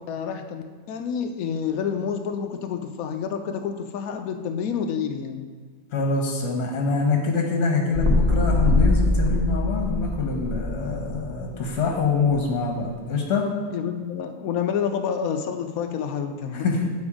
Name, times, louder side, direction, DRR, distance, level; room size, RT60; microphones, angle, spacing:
voice 1, 0.0-5.5 13.7-16.9, left 7 dB, 75° left, 6 dB, 0.8 m, -29 dB
voice 2, 5.9-13.5 16.5-16.8, left 4 dB, 55° left, 0 dB, 1.5 m, -25 dB
sound 1, 7.9-11.7 12.3-12.4, left 2 dB, 40° right, 1.3 m, -22 dB
8.8 x 4.3 x 4.9 m, 1.5 s
omnidirectional pair, 2.0 m